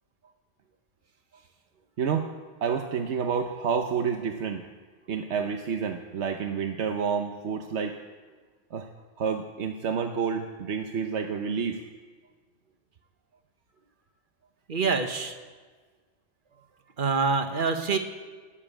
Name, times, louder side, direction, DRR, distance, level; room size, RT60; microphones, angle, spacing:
voice 1, 2.0-2.3 2.6-4.6 5.1-8.0 8.7-8.9 9.2-11.8, right 6 dB, 70° right, 5 dB, 1.1 m, -29 dB
voice 2, 14.7-15.3 17.0-18.0, right 4 dB, 45° right, 6 dB, 1.3 m, -25 dB
18.5 x 7.2 x 8.9 m, 1.5 s
omnidirectional pair, 1.2 m